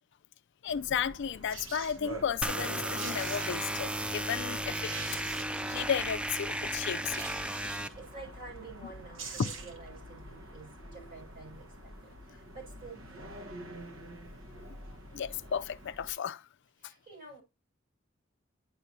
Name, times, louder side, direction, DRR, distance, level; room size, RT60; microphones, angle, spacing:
voice 1, 0.6-5.0 5.3-7.2 9.4-9.5 15.1-16.4, left 8 dB, 60° left, 0.4 m, -34 dB
sound 1, 0.7-16.1, equal, 85° right, 1.3 m, -48 dB
sound 2, 1.5-2.0 2.7-2.8 3.0-3.8 4.3-4.4 4.7-5.8 7.1-8.0 8.8-8.9 9.1-9.9 10.2-10.3, right 5 dB, 70° right, 1.6 m, -44 dB
sound 3, 2.4-7.9, right 1 dB, 5° right, 0.4 m, -34 dB
voice 2, 8.0-13.5 16.8-17.4, right 3 dB, 45° right, 5.7 m, -49 dB
9.7 x 6.0 x 2.7 m
head